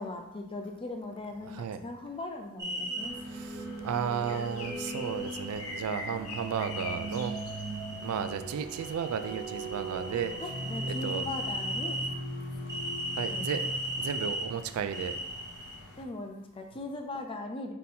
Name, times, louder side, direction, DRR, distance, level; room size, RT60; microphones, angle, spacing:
voice 1, 0.0-3.2 10.4-12.0 13.3-13.6 16.0-17.7, left 2 dB, 25° left, 4 dB, 0.4 m, -39 dB
voice 2, 1.4-1.8 3.3-7.3 8.0-10.3 11.0-11.3 13.2-15.2, right 7 dB, 80° right, 10 dB, 0.3 m, -34 dB
sound 1, 2.6-3.1 4.2-5.8 6.4-8.4 8.7-12.1 12.7-14.4 14.9-15.8, right 1 dB, 15° right, 0.7 m, -38 dB
sound 2, 2.7-14.6, right 2 dB, 55° right, 0.7 m, -40 dB
sound 3, 3.0-16.1, left 3 dB, 75° left, 0.6 m, -46 dB
3.7 x 2.7 x 4.2 m, 0.87 s
head